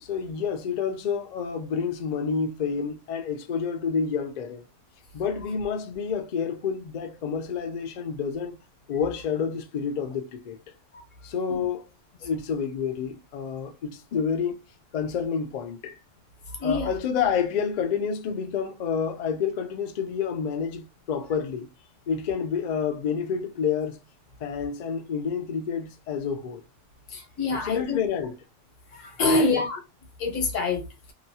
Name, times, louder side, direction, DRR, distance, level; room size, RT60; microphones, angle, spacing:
voice 1, 0.0-4.6 5.1-8.6 8.9-10.6 11.2-11.8 12.2-14.6 14.9-16.0 16.6-21.7 22.1-24.0 24.4-26.6 27.5-28.3 29.3-29.5, left 6 dB, 70° left, 0.4 m, -29 dB
voice 2, 16.5-16.9 27.1-28.0 28.9-29.8 30.2-30.9, left 3 dB, 90° left, 1.2 m, -26 dB
2.8 x 2.2 x 2.7 m
omnidirectional pair, 1.3 m